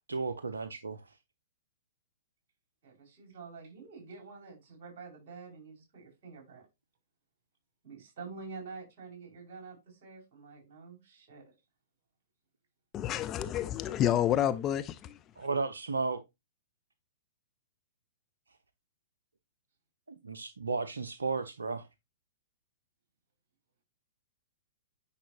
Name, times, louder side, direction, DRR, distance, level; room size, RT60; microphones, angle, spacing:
voice 1, 0.1-1.1 15.4-16.2 20.1-21.9, right 4 dB, 70° right, 0.6 m, -34 dB
voice 2, 2.8-6.7 7.8-11.6, right 4 dB, 45° right, 5.3 m, -48 dB
voice 3, 12.9-15.5, left 11 dB, 25° left, 0.5 m, -30 dB
9.9 x 5.5 x 2.5 m
figure-of-eight pair, 110°, 0 cm